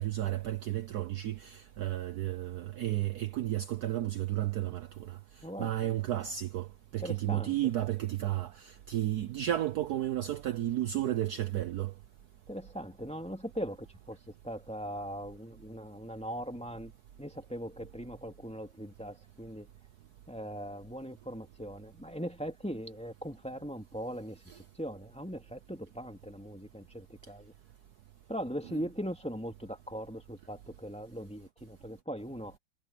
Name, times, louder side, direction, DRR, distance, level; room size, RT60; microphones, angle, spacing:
voice 1, 0.0-5.2 5.6-11.9, right 13 dB, 65° right, 1.2 m, -32 dB
voice 2, 5.4-5.9 7.0-7.7 12.5-14.2 14.4-16.9 17.2-19.7 20.3-27.5 28.3-32.6, equal, 5° left, 2.7 m, -40 dB
omnidirectional pair, 2.1 m